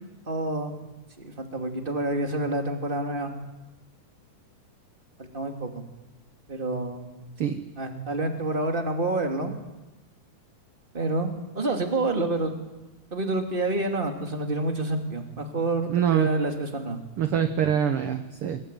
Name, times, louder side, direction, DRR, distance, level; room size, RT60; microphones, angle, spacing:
voice 1, 0.3-0.7 1.2-3.3 5.3-5.8 6.5-7.1 7.8-9.5 10.9-11.3 11.5-12.5 13.1-17.0, right 2 dB, 15° right, 4 dB, 2.7 m, -28 dB
voice 2, 15.9-16.3 17.2-18.6, right 9 dB, 55° right, 8 dB, 1.6 m, -24 dB
23.5 x 22.5 x 9.2 m, 1.0 s
omnidirectional pair, 3.8 m